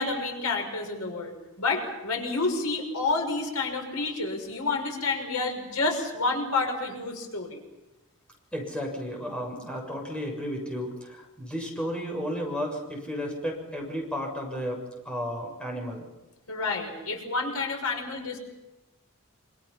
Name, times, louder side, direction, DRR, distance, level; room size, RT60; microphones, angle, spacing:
voice 1, 0.0-7.6 16.5-18.4, left 3 dB, 85° left, 3 dB, 6.0 m, -29 dB
voice 2, 8.5-16.0, equal, 5° left, 0 dB, 7.0 m, -33 dB
27.5 x 26.5 x 5.8 m, 1.0 s
head